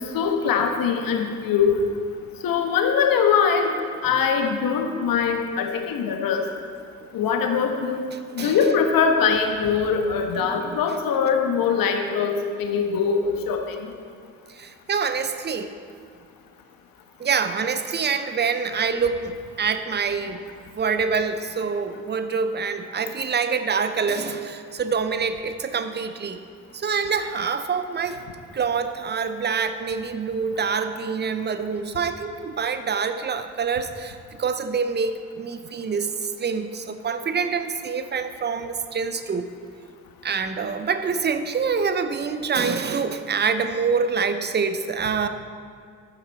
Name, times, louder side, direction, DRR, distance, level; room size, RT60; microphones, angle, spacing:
voice 1, 0.1-1.8 2.4-3.7 4.0-6.4 7.1-8.0 8.3-12.3 12.6-13.8, left 6 dB, 50° left, 4 dB, 1.4 m, -22 dB
voice 2, 8.1-8.6 10.4-10.8 14.5-15.7 17.2-20.4 20.7-26.4 26.7-28.2 28.5-39.5 40.2-45.3, right 5 dB, 25° right, 10 dB, 0.8 m, -26 dB
12.0 x 9.5 x 4.3 m, 2.2 s
figure-of-eight pair, 50°, 43 cm